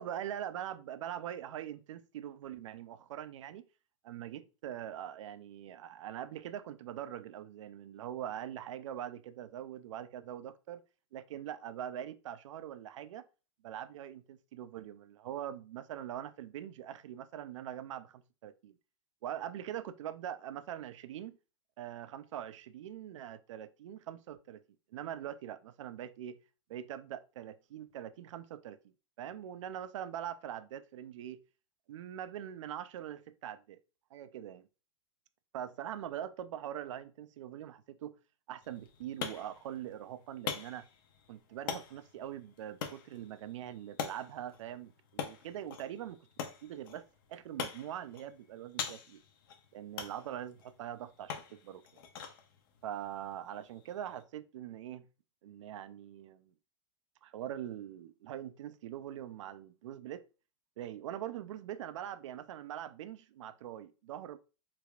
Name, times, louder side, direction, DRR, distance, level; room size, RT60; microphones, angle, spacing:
voice 1, 0.0-3.7 4.0-10.8 11.1-13.2 13.6-18.7 19.2-21.4 21.8-24.6 24.9-26.4 26.7-28.8 29.2-31.4 31.9-33.8 34.1-34.7 35.5-38.1 38.5-40.9 41.3-46.2 46.6-49.2 49.7-51.8 52.8-55.0 55.4-56.5 57.2-60.2 60.8-64.4, right 11 dB, 80° right, 0.4 m, -43 dB
sound 1, 38.6-54.2, left 7 dB, 45° left, 0.6 m, -45 dB
3.3 x 3.3 x 2.3 m
supercardioid pair, 175°, 16 cm